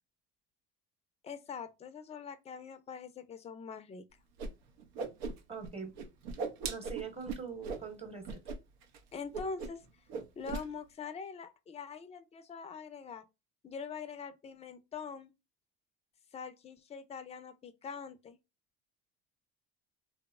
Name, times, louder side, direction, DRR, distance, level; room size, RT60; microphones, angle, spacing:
voice 1, 1.2-4.1 9.1-9.8 10.4-13.3 13.6-15.3 16.3-18.4, left 5 dB, 20° left, 0.4 m, -43 dB
Whoosh swoosh swish, 4.4-4.5 4.8-5.7 6.0-7.8 8.2-8.6 8.8-9.0 9.3-9.8 10.1-10.6, right 4 dB, 85° right, 0.6 m, -38 dB
voice 2, 5.5-5.9 6.7-8.4, right 6 dB, 20° right, 1.0 m, -42 dB
2.9 x 2.0 x 2.2 m
supercardioid pair, 75°, 32 cm